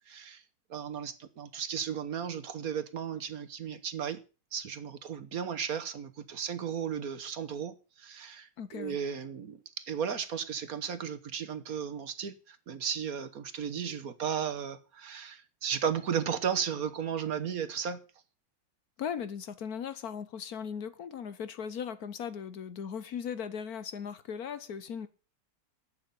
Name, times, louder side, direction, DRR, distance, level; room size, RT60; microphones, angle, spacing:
voice 1, 0.1-0.4 0.7-4.2 4.5-18.0, right 7 dB, 60° right, 1.5 m, -35 dB
voice 2, 8.6-9.0 19.0-25.1, left 7 dB, 65° left, 1.3 m, -38 dB
11.5 x 8.1 x 7.0 m
omnidirectional pair, 1.8 m